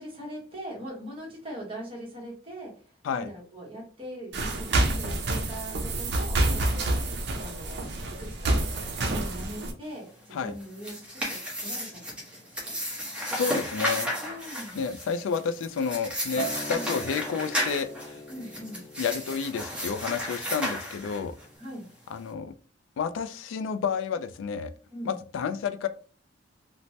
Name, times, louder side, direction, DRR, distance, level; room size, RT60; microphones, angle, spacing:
voice 1, 0.0-6.8 7.4-11.2 11.6-12.0 12.6-12.7 14.2-14.8 16.7-16.9 18.3-18.8 21.6-21.9 24.9-25.2, equal, 30° right, -3 dB, 1.1 m, -41 dB
sound 1, 4.3-9.7, right 2 dB, 60° right, 0.5 m, -28 dB
sound 2, 10.5-21.4, equal, 5° right, 0.9 m, -33 dB
voice 2, 13.2-14.1 14.7-18.2 19.0-21.4 22.1-22.5 23.0-24.7 25.0-25.9, left 6 dB, 80° left, 12 dB, 0.3 m, -30 dB
Acoustic guitar, 16.4-20.8 21.2-21.6, right 1 dB, 35° left, 0.7 m, -41 dB
3.1 x 2.1 x 2.7 m, 0.41 s
head